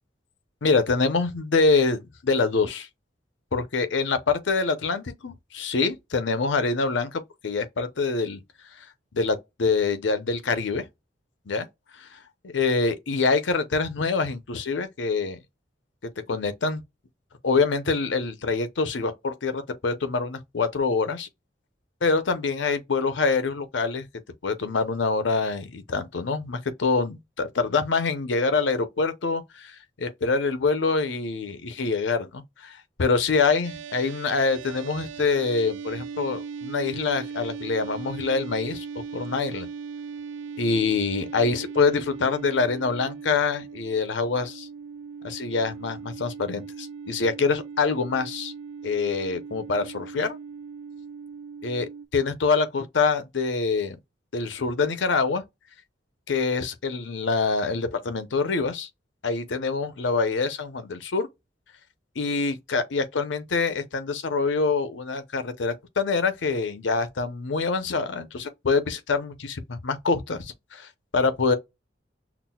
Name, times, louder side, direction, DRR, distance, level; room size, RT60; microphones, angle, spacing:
voice 1, 0.6-2.9 3.5-8.4 9.1-10.8 11.5-11.7 12.0-12.2 12.4-15.4 16.3-16.8 17.4-21.3 22.0-24.1 24.4-38.8 39.1-39.7 40.6-44.7 45.2-48.5 48.8-50.4 51.6-51.9 52.1-54.0 54.3-55.4 56.3-58.9 59.2-61.3 62.2-71.5, left 4 dB, 80° left, 0.6 m, -25 dB
sound 1, 33.6-52.1, right 6 dB, 85° right, 0.3 m, -39 dB
5.9 x 2.0 x 2.2 m
head